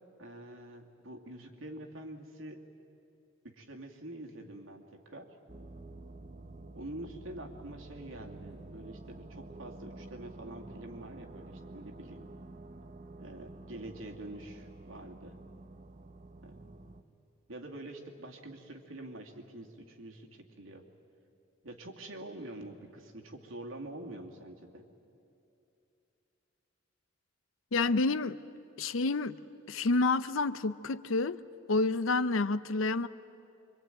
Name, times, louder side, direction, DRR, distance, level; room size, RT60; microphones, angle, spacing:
voice 1, 0.2-2.6 3.4-5.4 6.7-12.3 13.2-15.4 16.4-16.9 17.5-20.9 21.6-24.9, right 1 dB, 85° right, 2.4 m, -46 dB
sound 1, 5.5-17.0, right 2 dB, 40° right, 0.8 m, -49 dB
voice 2, 27.7-28.4 28.8-29.4 29.7-31.4 31.7-33.1, left 3 dB, 80° left, 0.7 m, -29 dB
25.5 x 24.0 x 9.1 m
head